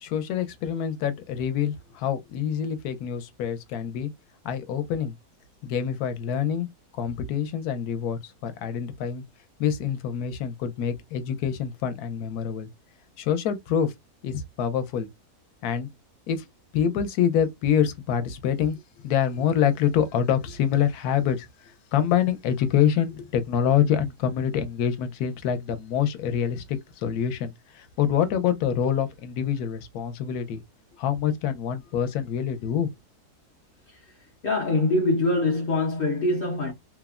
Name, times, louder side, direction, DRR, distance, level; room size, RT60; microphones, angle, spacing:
voice 1, 0.0-4.1 4.4-5.1 5.6-6.7 6.9-9.2 9.6-12.7 13.2-13.9 14.2-15.1 15.6-15.9 16.3-16.5 16.7-18.8 19.0-30.6 31.0-32.9, left 8 dB, 80° left, 1.1 m, -26 dB
voice 2, 34.4-36.7, left 2 dB, 60° left, 0.6 m, -24 dB
3.2 x 2.0 x 2.3 m
omnidirectional pair, 1.6 m